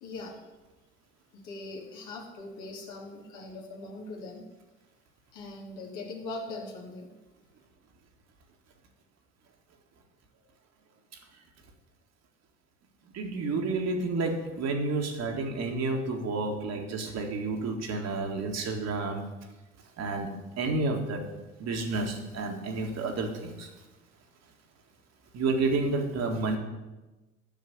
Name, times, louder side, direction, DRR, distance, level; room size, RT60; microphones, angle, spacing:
voice 1, 0.0-0.4 1.4-4.4 5.3-7.1, left 2 dB, 60° left, -1 dB, 2.6 m, -41 dB
voice 2, 13.1-19.2 20.0-20.3 20.6-21.2 21.6-23.7 25.3-26.6, right 3 dB, 45° right, 3 dB, 2.0 m, -30 dB
9.1 x 6.5 x 8.3 m, 1.1 s
figure-of-eight pair, 55°, 35 cm